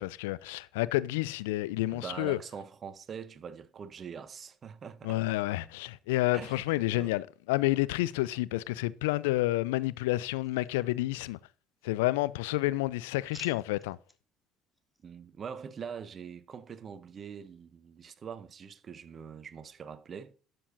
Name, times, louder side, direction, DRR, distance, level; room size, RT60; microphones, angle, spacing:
voice 1, 0.0-2.4 5.0-11.4 11.8-14.0, left 18 dB, 75° left, 0.4 m, -29 dB
voice 2, 1.9-5.4 6.3-6.6 6.9-7.1 15.0-20.3, right 7 dB, 40° right, 0.8 m, -43 dB
sound 1, 10.3-11.4 11.7-12.4 12.8-14.2 14.7-15.0, equal, 5° left, 1.1 m, -55 dB
12.0 x 7.0 x 2.6 m
figure-of-eight pair, 55°, 0 cm